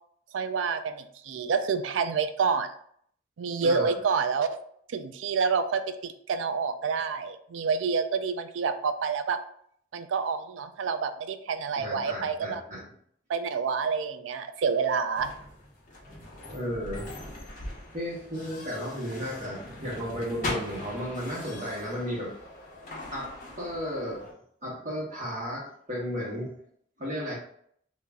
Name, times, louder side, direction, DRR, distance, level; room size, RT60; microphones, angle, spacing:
voice 1, 0.3-2.7 3.4-4.5 4.9-9.4 9.9-12.6 13.3-15.3, right 5 dB, 75° right, 10 dB, 0.4 m, -28 dB
voice 2, 3.6-4.0 11.8-12.8 16.5-17.1 17.9-22.3 23.1-24.3 24.6-26.5 27.0-27.4, equal, 40° right, -5 dB, 1.5 m, -34 dB
sound 1, 15.1-24.3, left 1 dB, 45° left, 0.9 m, -40 dB
2.8 x 2.7 x 3.5 m, 0.65 s
head